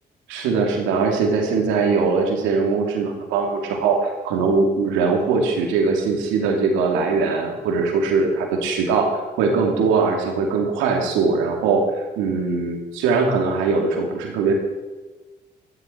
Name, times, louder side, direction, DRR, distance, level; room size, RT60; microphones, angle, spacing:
voice 1, 0.3-14.5, right 4 dB, 85° right, 2 dB, 2.7 m, -21 dB
14.0 x 12.5 x 4.6 m, 1.3 s
supercardioid pair, 55°, 19 cm